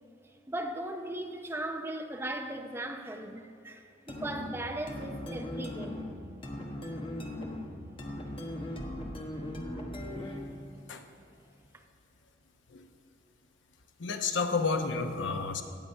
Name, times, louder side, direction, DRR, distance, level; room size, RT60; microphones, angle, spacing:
voice 1, 0.5-6.1, right 1 dB, 15° right, 0.6 m, -38 dB
sound 1, 4.1-10.6, left 1 dB, 30° left, 1.2 m, -39 dB
voice 2, 14.0-15.6, left 4 dB, 85° left, 0.9 m, -30 dB
17.5 x 7.4 x 5.5 m
head